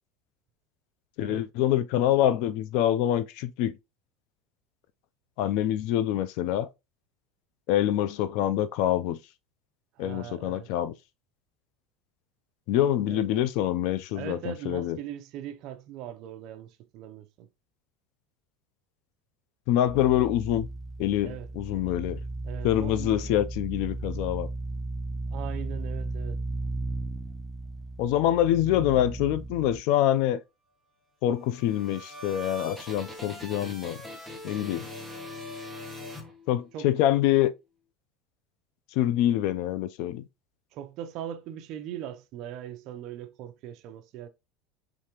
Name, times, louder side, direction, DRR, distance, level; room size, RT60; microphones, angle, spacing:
voice 1, 1.2-3.8 5.4-6.7 7.7-9.2 10.0-10.9 12.7-15.0 19.7-20.7 21.0-22.2 22.6-24.5 28.0-30.4 31.2-34.0 34.4-34.9 36.5-37.5 38.9-40.2, left 12 dB, 60° left, 0.5 m, -25 dB
voice 2, 9.9-10.7 13.1-13.2 14.1-17.5 21.2-21.5 22.4-23.2 25.3-26.4 36.7-36.9 40.7-44.3, right 10 dB, 50° right, 0.7 m, -40 dB
sound 1, 19.9-29.8, right 2 dB, 15° right, 0.3 m, -35 dB
sound 2, 31.3-36.9, left 1 dB, 5° left, 0.9 m, -42 dB
5.0 x 3.3 x 3.0 m
supercardioid pair, 155°, 0 cm